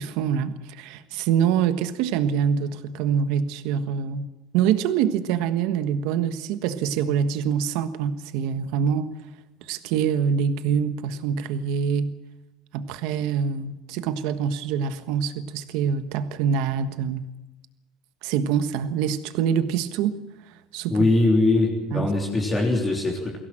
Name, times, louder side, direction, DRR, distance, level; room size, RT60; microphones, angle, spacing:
voice 1, 0.0-4.3 4.5-9.1 9.6-12.2 12.7-17.2 18.2-20.2 20.5-21.1 21.9-22.1, right 7 dB, 70° right, 10 dB, 1.4 m, -25 dB
voice 2, 20.9-23.4, left 2 dB, 15° left, -1 dB, 3.4 m, -21 dB
22.5 x 17.0 x 7.6 m, 1.0 s
cardioid pair, 150°, 0 cm